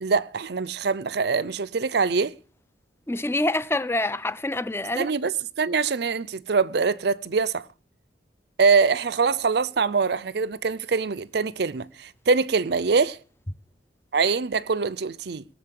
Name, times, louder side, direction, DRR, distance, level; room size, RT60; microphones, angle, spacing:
voice 1, 0.0-2.3 5.0-5.3 5.6-7.6 8.6-13.2 14.1-15.4, right 4 dB, 60° right, 0.6 m, -23 dB
voice 2, 3.1-5.1, left 2 dB, 15° left, 0.6 m, -26 dB
18.0 x 7.3 x 7.5 m
head